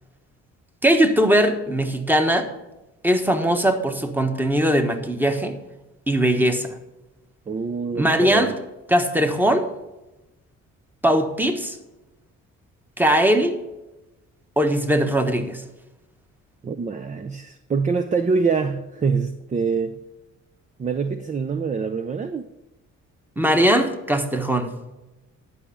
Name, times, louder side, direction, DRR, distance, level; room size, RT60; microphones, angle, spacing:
voice 1, 0.8-2.5 3.0-5.6 6.1-6.8 7.9-8.5 8.9-9.7 11.0-11.8 13.0-13.6 14.6-15.6 23.4-24.7, right 1 dB, 5° right, 6 dB, 1.2 m, -20 dB
voice 2, 7.5-8.6 16.6-20.0 20.8-22.5, right 5 dB, 25° right, 10 dB, 0.5 m, -25 dB
11.0 x 5.0 x 6.9 m, 1.0 s
cardioid pair, 90°, 30 cm